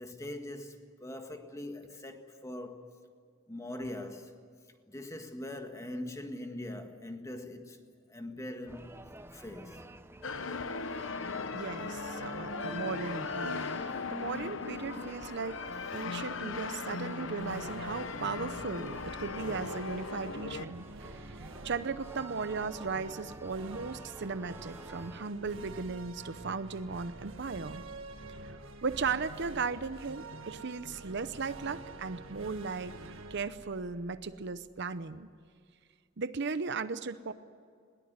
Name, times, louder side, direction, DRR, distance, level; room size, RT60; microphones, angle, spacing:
voice 1, 0.0-2.9 3.5-4.3 4.9-7.8 8.1-8.9 9.3-9.8, left 1 dB, 15° left, 1.8 m, -42 dB
sound 1, 8.7-25.3, right 1 dB, 10° right, 0.8 m, -50 dB
sound 2, 10.2-20.7, left 4 dB, 70° left, 1.0 m, -38 dB
voice 2, 11.5-13.8 14.1-15.6 15.9-27.8 28.8-35.3 36.2-37.3, right 4 dB, 60° right, 0.7 m, -37 dB
sound 3, 17.3-34.8, right 3 dB, 85° right, 1.6 m, -48 dB
21.0 x 18.5 x 9.5 m
head